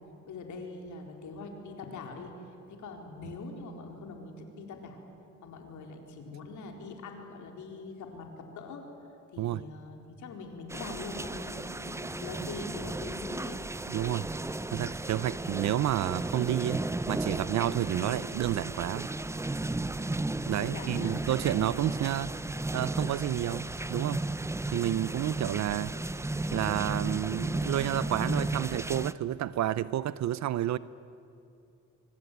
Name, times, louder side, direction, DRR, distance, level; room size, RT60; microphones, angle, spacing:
voice 1, 0.2-2.4 2.7-5.0 5.4-8.8 9.3-13.6 20.6-21.3, left 3 dB, 75° left, 3 dB, 4.5 m, -43 dB
sound 1, 10.7-29.1, right 2 dB, 10° right, 0.7 m, -34 dB
voice 2, 13.9-14.3 14.7-19.1 20.5-22.3 22.7-24.2 24.7-25.9 26.5-30.8, right 12 dB, 65° right, 17 dB, 0.6 m, -30 dB
24.5 x 24.5 x 9.4 m, 2.6 s
cardioid pair, 90°, 30 cm